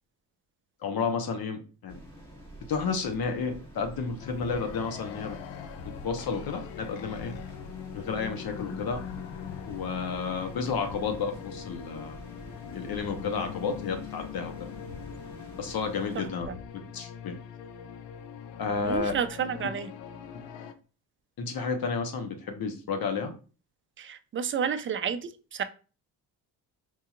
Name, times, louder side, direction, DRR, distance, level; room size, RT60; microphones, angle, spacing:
voice 1, 0.8-2.0 2.7-5.4 5.8-7.3 7.9-9.0 9.7-12.2 12.7-14.5 15.6-16.5 16.9-17.4 18.6-19.1 20.3-20.4 21.4-23.3, left 5 dB, 55° left, 6 dB, 1.0 m, -31 dB
sound 1, 1.9-16.3, equal, 10° left, 1.3 m, -48 dB
sound 2, 4.2-20.7, left 8 dB, 80° left, 0.6 m, -42 dB
voice 2, 18.8-19.9 24.0-25.6, right 7 dB, 30° right, 10 dB, 0.4 m, -31 dB
4.6 x 2.7 x 2.4 m, 0.36 s
cardioid pair, 75°, 43 cm